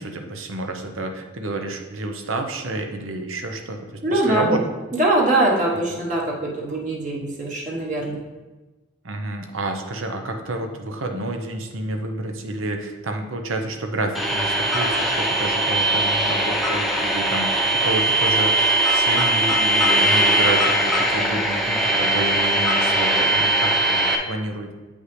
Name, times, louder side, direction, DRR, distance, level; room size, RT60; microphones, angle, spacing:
voice 1, 0.0-3.8 4.1-4.6 5.7-6.0 9.0-18.5 18.9-24.7, right 2 dB, 80° right, 4 dB, 0.8 m, -29 dB
voice 2, 4.0-4.5 5.0-8.2, right 2 dB, 40° right, -3 dB, 1.1 m, -22 dB
sound 1, 14.1-24.2, right 1 dB, ahead, 0.7 m, -20 dB
8.2 x 5.4 x 3.2 m, 1.2 s
head